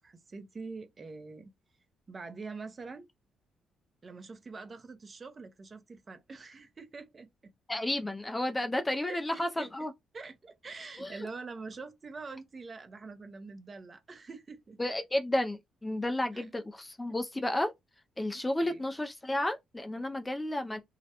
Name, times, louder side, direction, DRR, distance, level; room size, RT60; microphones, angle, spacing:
voice 1, 0.0-1.5 2.1-3.1 4.0-7.5 9.1-9.7 10.1-14.8 16.3-16.5 18.3-18.8, right 4 dB, 35° right, 0.5 m, -45 dB
voice 2, 7.7-9.9 11.0-11.2 14.8-17.7 18.2-20.8, left 1 dB, 15° left, 0.3 m, -32 dB
2.4 x 2.1 x 2.7 m
cardioid pair, 90°, 0 cm